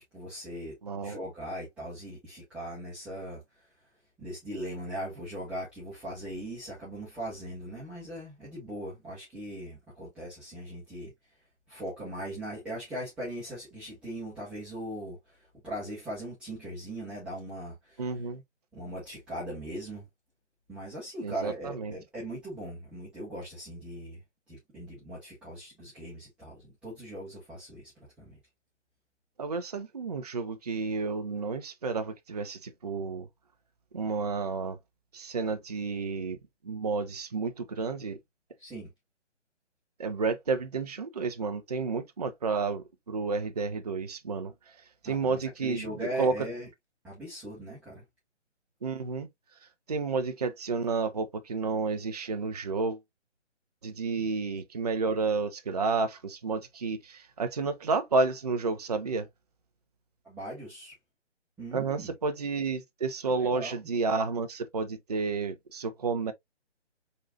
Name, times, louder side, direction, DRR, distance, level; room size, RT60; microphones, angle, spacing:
voice 1, 0.1-0.7 1.0-3.7 4.2-11.1 11.7-18.0 18.7-20.1 20.7-24.2 24.5-27.9 28.2-28.4 38.6-38.9 45.0-46.7 47.0-48.0 54.1-54.3 60.2-60.9 61.6-62.1 63.3-63.8, right 1 dB, 5° right, 1.4 m, -39 dB
voice 2, 0.8-1.2 18.0-18.4 21.2-21.9 29.4-33.3 33.9-34.8 35.1-36.4 36.6-38.2 40.0-44.5 45.0-46.3 48.8-49.3 49.9-53.0 53.8-59.3 61.7-66.3, right 4 dB, 35° right, 0.5 m, -31 dB
4.5 x 3.8 x 2.4 m
figure-of-eight pair, 155°, 36 cm